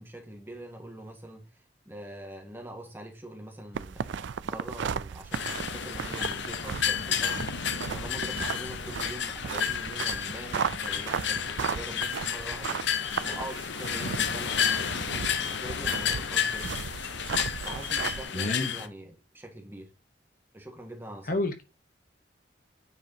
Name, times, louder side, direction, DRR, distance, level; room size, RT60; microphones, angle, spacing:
voice 1, 0.0-7.5 7.9-12.8 13.2-16.8 17.6-19.9 20.5-21.4, right 1 dB, 10° right, 1.6 m, -43 dB
sound 1, 3.7-18.2, right 6 dB, 70° right, 0.4 m, -36 dB
sound 2, 5.3-18.9, left 8 dB, 65° left, 0.8 m, -31 dB
voice 2, 18.3-18.7 21.3-21.6, left 2 dB, 45° left, 1.0 m, -29 dB
9.3 x 4.8 x 2.8 m
head